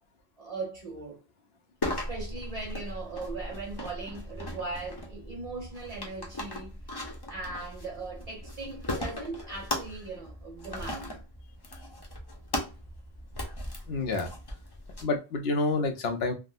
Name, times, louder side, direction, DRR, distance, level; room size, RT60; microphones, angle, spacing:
voice 1, 0.4-1.2 1.9-6.8 7.3-11.1, right 3 dB, 35° right, 1.4 m, -39 dB
sound 1, 1.8-15.0, left 1 dB, 25° left, 0.6 m, -38 dB
voice 2, 13.9-14.3 15.0-16.3, left 3 dB, 70° left, 0.8 m, -28 dB
3.5 x 2.0 x 2.4 m
omnidirectional pair, 1.1 m